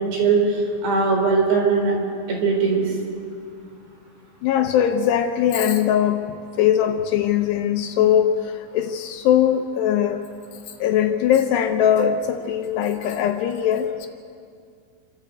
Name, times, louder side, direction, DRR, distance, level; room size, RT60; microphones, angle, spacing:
voice 1, 0.0-1.9 2.3-3.0, right 4 dB, 65° right, -1 dB, 6.3 m, -20 dB
voice 2, 4.4-10.3 10.8-14.1, left 9 dB, 75° left, 6 dB, 2.7 m, -20 dB
27.5 x 13.0 x 8.1 m, 2.3 s
omnidirectional pair, 5.3 m